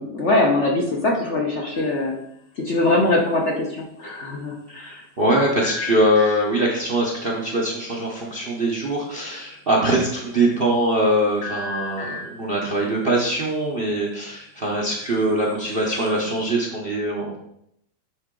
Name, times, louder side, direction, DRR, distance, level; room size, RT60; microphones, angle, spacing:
voice 1, 0.0-2.1 2.6-5.0, left 2 dB, 50° left, -2 dB, 0.9 m, -22 dB
sound 1, 1.7-2.2 5.6-6.8 11.4-12.6 15.3-16.2, left 4 dB, 70° left, 0.5 m, -35 dB
voice 2, 4.7-17.4, right 1 dB, 45° right, -2 dB, 0.8 m, -22 dB
9.4 x 3.8 x 3.7 m, 0.76 s
omnidirectional pair, 2.1 m